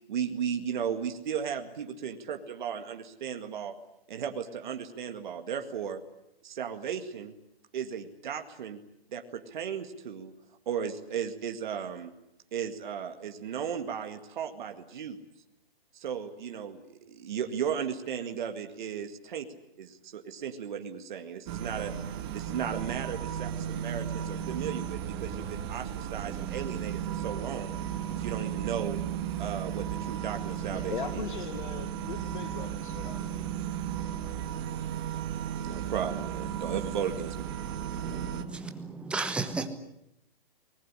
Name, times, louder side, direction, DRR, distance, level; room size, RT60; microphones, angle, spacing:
voice 1, 0.1-3.7 4.1-6.0 6.4-7.3 7.7-8.8 9.1-10.3 10.7-12.1 12.5-15.2 15.9-19.5 19.8-21.9 22.3-27.7 28.2-29.0 29.4-31.3 35.6-37.3, right 8 dB, 50° right, 2.1 m, -35 dB
sound 1, 21.5-38.4, right 9 dB, 25° right, 1.7 m, -35 dB
voice 2, 30.7-33.3, left 7 dB, 55° left, 1.7 m, -39 dB
voice 3, 38.0-39.7, right 3 dB, 5° right, 1.1 m, -34 dB
22.5 x 20.0 x 10.0 m
hypercardioid pair, 155°, 30 cm